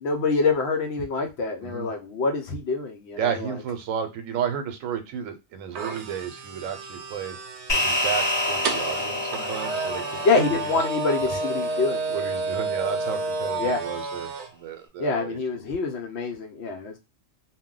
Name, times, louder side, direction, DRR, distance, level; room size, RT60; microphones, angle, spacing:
voice 1, 0.0-3.5 10.2-12.0 13.6-13.8 15.0-17.0, left 4 dB, 65° left, 0.8 m, -26 dB
voice 2, 3.2-7.4 7.7-10.8 11.3-11.8 12.1-15.4, right 8 dB, 85° right, 1.0 m, -33 dB
sound 1, 5.7-14.5, right 3 dB, 65° right, 0.8 m, -31 dB
sound 2, 7.7-12.3, left 1 dB, 35° left, 0.4 m, -29 dB
2.3 x 2.1 x 3.7 m
omnidirectional pair, 1.3 m